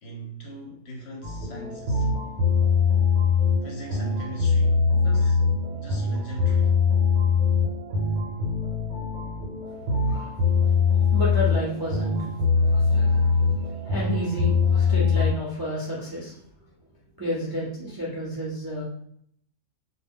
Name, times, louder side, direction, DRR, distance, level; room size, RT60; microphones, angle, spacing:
voice 1, 0.0-2.1 3.6-5.4 5.7-6.7, equal, 60° left, 0.7 m, -40 dB
sound 1, 1.2-15.3, left 5 dB, 75° right, 1.0 m, -23 dB
voice 2, 9.8-10.4 10.6-10.7 11.1-16.4 17.2-18.8, equal, 30° right, 0.4 m, -31 dB
2.1 x 2.1 x 3.5 m
omnidirectional pair, 1.4 m